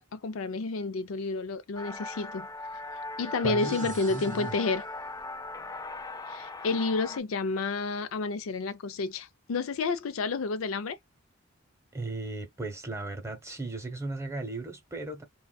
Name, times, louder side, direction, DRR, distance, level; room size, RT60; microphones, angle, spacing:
voice 1, 0.0-2.5 3.2-4.9 6.3-11.0, left 3 dB, 75° left, 0.4 m, -30 dB
sound 1, 1.8-7.2, left 2 dB, 20° left, 0.3 m, -39 dB
voice 2, 3.4-4.6 11.9-15.2, right 2 dB, 15° right, 0.9 m, -36 dB
sound 2, 3.6-5.0, right 8 dB, 40° right, 0.5 m, -49 dB
3.6 x 2.3 x 2.2 m
head